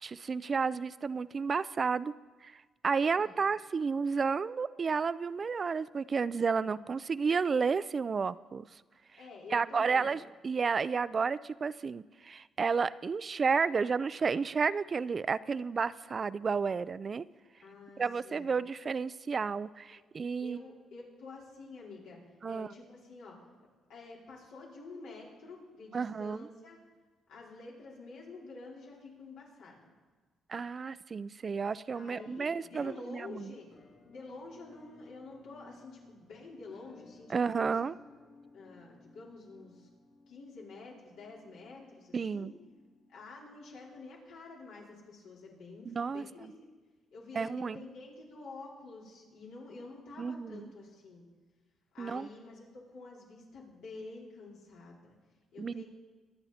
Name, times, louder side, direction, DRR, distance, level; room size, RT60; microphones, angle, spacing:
voice 1, 0.0-2.1 2.4-2.5 2.8-8.7 9.5-17.3 18.0-20.6 22.4-22.7 25.9-26.4 30.5-33.5 37.3-38.0 42.1-42.5 45.9-46.2 47.4-47.8 50.2-50.6 52.0-52.3 55.6-55.8, right 5 dB, 40° right, 17 dB, 0.4 m, -31 dB
voice 2, 9.1-10.1 17.5-18.5 19.9-20.1 20.4-22.2 22.4-23.4 23.9-26.8 27.3-29.9 31.9-33.8 34.1-37.7 38.5-39.9 40.3-42.6 43.1-46.5 47.1-51.2 51.9-55.1 55.5-55.9, left 3 dB, 85° left, -4 dB, 4.2 m, -49 dB
Musical instrument, 33.7-43.5, left 2 dB, 70° left, 3.5 m, -59 dB
24.0 x 8.8 x 4.3 m, 1.3 s
cardioid pair, 90°, 0 cm